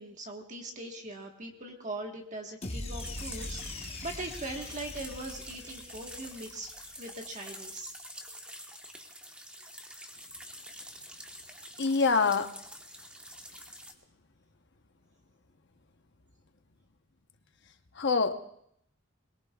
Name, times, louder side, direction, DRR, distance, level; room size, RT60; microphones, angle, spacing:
voice 1, 0.0-6.7 7.0-7.9, right 2 dB, 40° right, 2 dB, 1.4 m, -41 dB
sound 1, 2.6-7.0, left 2 dB, 30° left, 1.2 m, -41 dB
sound 2, 3.0-13.9, equal, 5° right, 1.2 m, -47 dB
voice 2, 11.8-12.5 18.0-18.4, left 4 dB, 60° left, 7 dB, 1.0 m, -25 dB
22.0 x 21.5 x 2.4 m, 0.70 s
head